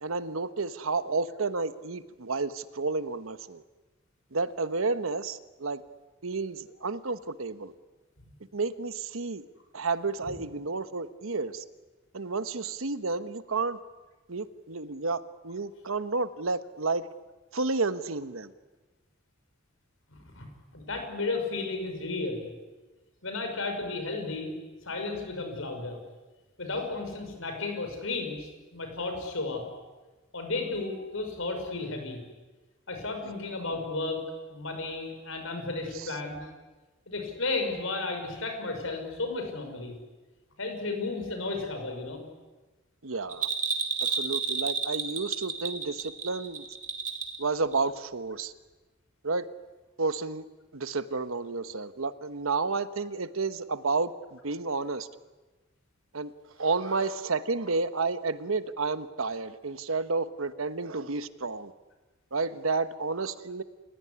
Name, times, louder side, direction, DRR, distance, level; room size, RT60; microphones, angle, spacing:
voice 1, 0.0-3.6 4.3-5.8 6.2-7.7 8.5-9.4 9.7-11.6 12.1-13.8 14.3-17.1 17.5-18.5 36.0-36.1 43.0-43.5 44.0-46.6 47.4-48.5 49.2-49.5 50.0-50.4 50.7-55.1 56.1-56.3 56.6-61.7 62.3-63.6, right 3 dB, 85° right, 12 dB, 1.2 m, -31 dB
voice 2, 20.1-22.5 23.2-24.5 24.8-26.0 26.6-29.6 30.3-32.2 32.9-34.2 34.5-36.5 37.1-39.9 40.6-42.2, left 3 dB, 70° left, 5 dB, 6.2 m, -33 dB
Bell, 43.3-47.4 47.7-47.8, right 5 dB, 40° right, 3.2 m, -31 dB
29.0 x 17.0 x 10.0 m, 1.2 s
head